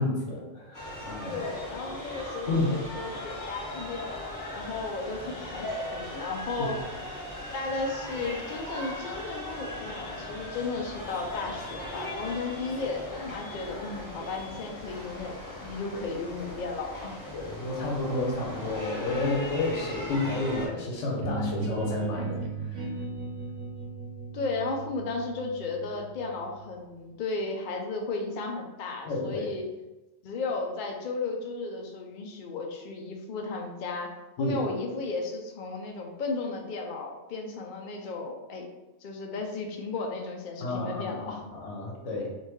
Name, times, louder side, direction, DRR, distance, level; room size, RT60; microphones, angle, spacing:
voice 1, 0.0-1.5 2.5-2.7 17.3-22.8 29.1-29.5 34.4-34.6 40.6-42.3, left 2 dB, 75° left, -1 dB, 1.1 m, -31 dB
sound 1, 0.7-20.7, left 1 dB, 20° left, 0.6 m, -39 dB
voice 2, 1.3-6.8 7.5-17.2 24.3-29.6 30.2-34.1 34.4-38.7 39.0-41.4, left 3 dB, 60° left, 1 dB, 0.5 m, -34 dB
sound 2, 21.2-26.8, right 3 dB, 75° right, 0.9 m, -36 dB
3.6 x 2.5 x 3.0 m, 1.0 s
omnidirectional pair, 1.3 m